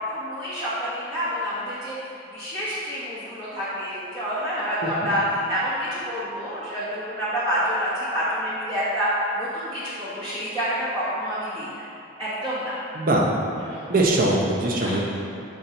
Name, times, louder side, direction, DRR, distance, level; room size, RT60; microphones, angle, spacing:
voice 1, 0.0-11.8 12.2-12.7 13.6-13.8 14.8-15.0, equal, 25° right, -12 dB, 1.3 m, -28 dB
voice 2, 13.9-15.0, right 2 dB, 45° right, -2 dB, 0.7 m, -21 dB
7.1 x 4.3 x 3.9 m, 2.7 s
head